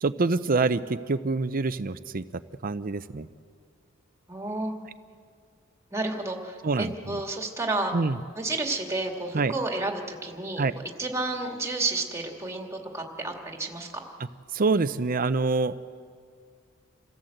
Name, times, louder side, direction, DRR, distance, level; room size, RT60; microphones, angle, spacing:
voice 1, 0.0-0.8 1.1-2.2 2.6-3.3 6.6-7.2 7.9-8.2 9.3-9.5 10.6-10.7 14.5-15.7, right 3 dB, 45° right, 13 dB, 0.6 m, -25 dB
voice 2, 4.3-4.7 5.9-7.9 8.3-10.6 11.0-14.0, right 2 dB, 15° right, 2 dB, 2.2 m, -31 dB
27.5 x 16.0 x 7.9 m, 2.1 s
head